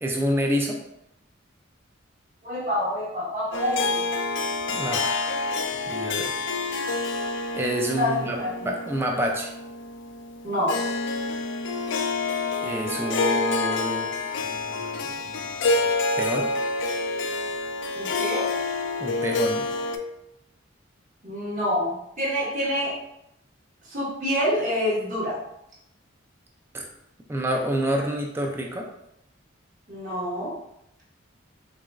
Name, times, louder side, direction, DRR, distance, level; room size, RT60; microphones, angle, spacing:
voice 1, 0.0-0.8 4.7-5.6 5.9-6.4 7.5-8.4 8.6-9.5 12.6-14.1 14.5-15.5 16.2-16.5 19.0-19.6 26.7-26.9 27.3-28.9, right 1 dB, 10° right, 0 dB, 0.4 m, -28 dB
voice 2, 2.4-4.0 8.0-8.7 10.4-10.8 17.9-18.5 21.2-23.0 23.9-25.4 29.9-30.5, left 1 dB, 40° right, -6 dB, 1.3 m, -27 dB
Harp, 3.5-20.0, left 3 dB, 65° left, 0.3 m, -28 dB
4.7 x 2.5 x 2.4 m, 0.80 s
head